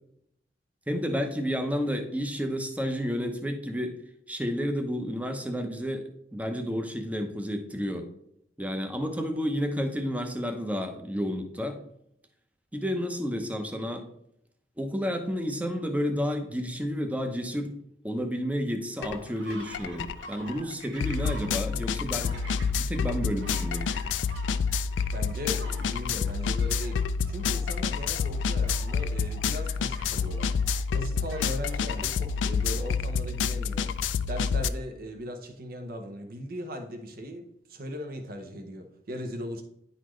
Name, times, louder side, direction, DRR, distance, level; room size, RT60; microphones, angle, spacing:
voice 1, 0.9-4.0 4.3-6.0 6.3-8.1 8.6-11.8 12.7-14.0 14.8-17.7 18.0-22.4 22.8-23.9, equal, 10° right, 5 dB, 0.7 m, -31 dB
sound 1, 18.9-33.0 33.5-33.6, right 1 dB, 90° right, 1.9 m, -48 dB
sound 2, 19.0-19.2 19.5-34.7, left 5 dB, 85° left, 0.3 m, -28 dB
voice 2, 25.1-27.0 27.3-30.5 30.9-33.9 34.3-39.6, equal, 55° right, 5 dB, 0.8 m, -38 dB
10.0 x 4.1 x 3.1 m, 0.75 s
head